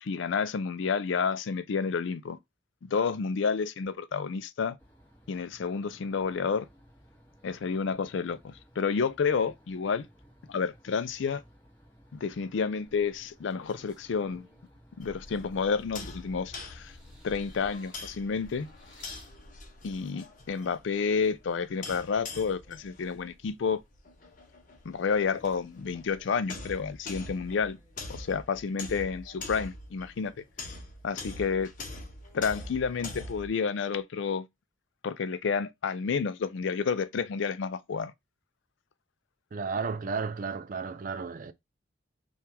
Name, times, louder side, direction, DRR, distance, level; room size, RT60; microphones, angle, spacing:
voice 1, 0.0-2.4 2.8-4.8 5.3-6.7 7.4-10.1 10.5-11.4 12.1-14.5 15.0-16.9 17.2-18.7 19.8-23.8 24.8-27.8 28.1-30.3 31.0-31.7 32.3-34.5 35.0-38.1, left 5 dB, 70° left, 0.4 m, -30 dB
sound 1, 4.8-17.3, equal, 10° left, 1.4 m, -58 dB
sound 2, 12.9-14.7 15.2-16.3 16.7-19.4 20.3-20.4, equal, 5° right, 1.6 m, -55 dB
sound 3, 15.0-33.5, left 2 dB, 40° left, 0.8 m, -44 dB
voice 2, 39.5-41.5, right 5 dB, 40° right, 0.4 m, -33 dB
3.5 x 2.4 x 4.3 m
head